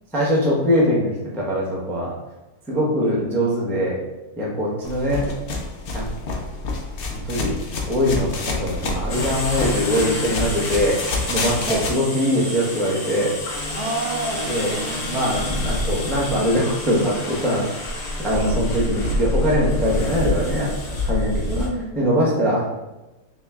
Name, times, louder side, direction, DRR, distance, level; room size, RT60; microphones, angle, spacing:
voice 1, 0.1-2.1 2.7-4.0 4.4-5.3 5.9-6.1 7.1-7.6 7.9-11.0 11.3-13.4 14.4-14.7 15.0-17.8 18.2-21.6 22.0-22.6, equal, ahead, -5 dB, 0.5 m, -22 dB
voice 2, 3.0-3.5 11.6-11.9 13.7-15.0 18.3-18.5 21.5-22.1, right 3 dB, 75° right, 3 dB, 1.1 m, -30 dB
sound 1, 4.8-11.9, left 3 dB, 80° left, 0.5 m, -28 dB
sound 2, 9.1-21.7, left 2 dB, 45° left, 0.9 m, -28 dB
3.5 x 3.0 x 3.4 m, 1.0 s
omnidirectional pair, 1.7 m